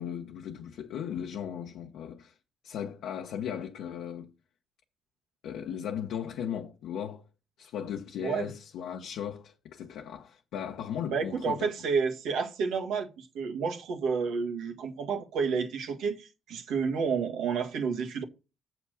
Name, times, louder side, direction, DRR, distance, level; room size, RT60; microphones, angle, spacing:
voice 1, 0.0-2.4 2.6-4.3 5.4-7.2 7.6-11.7, left 9 dB, 80° left, 0.9 m, -37 dB
voice 2, 11.1-18.2, right 5 dB, 85° right, 1.8 m, -30 dB
7.3 x 5.8 x 6.4 m
cardioid pair, 90°, 0 cm